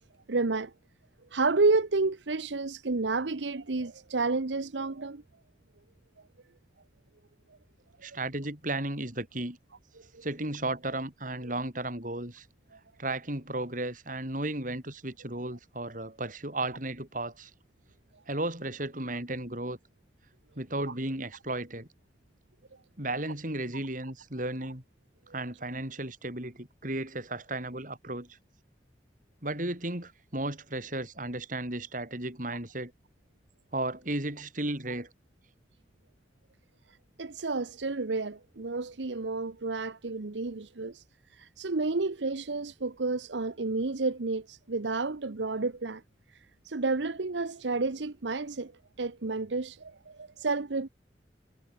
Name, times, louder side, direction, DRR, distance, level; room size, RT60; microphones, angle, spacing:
voice 1, 0.3-0.7 1.3-5.2 10.1-10.2 37.2-41.0 41.3-46.0 46.6-48.7 49.0-50.9, right 3 dB, 85° right, 1.0 m, -30 dB
voice 2, 8.0-9.6 10.2-12.5 13.0-17.5 18.3-19.8 20.5-21.9 23.0-24.8 25.3-28.4 29.4-32.9 33.7-35.1, right 2 dB, 45° right, 6.5 m, -34 dB
head